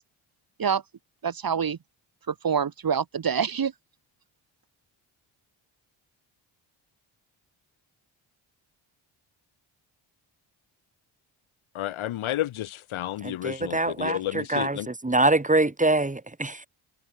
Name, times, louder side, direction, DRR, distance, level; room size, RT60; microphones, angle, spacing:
voice 1, 1.2-1.8 2.3-3.7, right 7 dB, 45° right, 1.5 m, -26 dB
voice 2, 11.7-14.9, left 13 dB, 75° left, 1.1 m, -31 dB
voice 3, 13.2-16.7, right 2 dB, 15° right, 2.9 m, -24 dB
cardioid pair, 60°, 50 cm